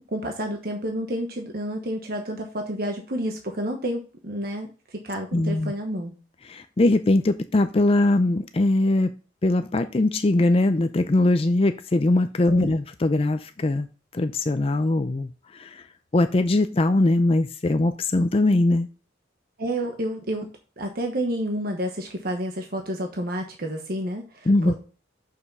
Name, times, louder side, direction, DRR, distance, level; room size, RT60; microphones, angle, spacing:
voice 1, 0.1-6.1 12.5-12.7 19.6-20.5 20.8-24.8, right 1 dB, 55° right, 1.1 m, -30 dB
voice 2, 5.3-5.7 6.4-9.1 9.4-13.9 14.1-15.8 16.1-18.9 24.5-24.8, left 2 dB, 30° left, 0.4 m, -21 dB
6.6 x 5.7 x 5.3 m
head